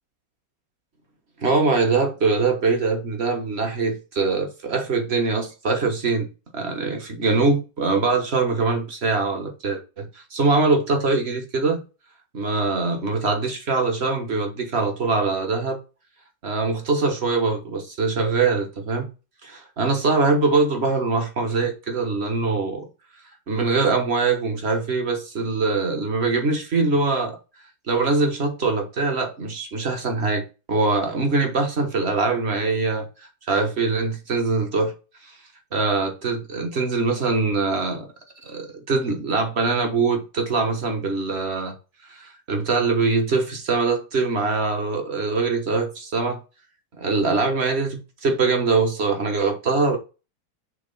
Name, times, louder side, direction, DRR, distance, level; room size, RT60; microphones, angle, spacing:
voice 1, 1.4-6.3 6.5-11.8 12.3-15.8 16.4-19.1 19.4-22.9 23.5-27.4 27.9-33.1 33.5-34.9 35.7-38.1 38.4-41.7 42.1-46.4 47.0-50.0, right 3 dB, 40° right, 1.3 m, -23 dB
6.8 x 3.5 x 5.4 m
omnidirectional pair, 2.0 m